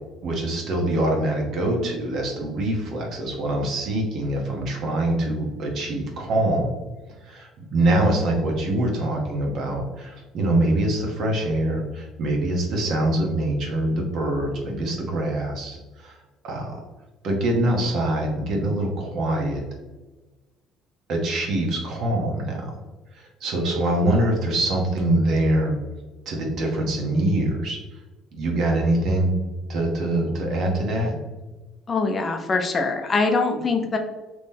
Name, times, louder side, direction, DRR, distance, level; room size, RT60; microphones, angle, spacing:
voice 1, 0.2-6.7 7.2-16.2 16.4-16.8 17.2-19.6 21.1-22.7 23.1-25.8 26.3-27.8 28.3-29.3 29.7-31.2, right 1 dB, 55° right, 0 dB, 1.0 m, -24 dB
voice 2, 31.9-34.0, left 3 dB, 25° left, 4 dB, 0.4 m, -23 dB
3.6 x 2.9 x 2.7 m, 1.2 s
cardioid pair, 145°, 0 cm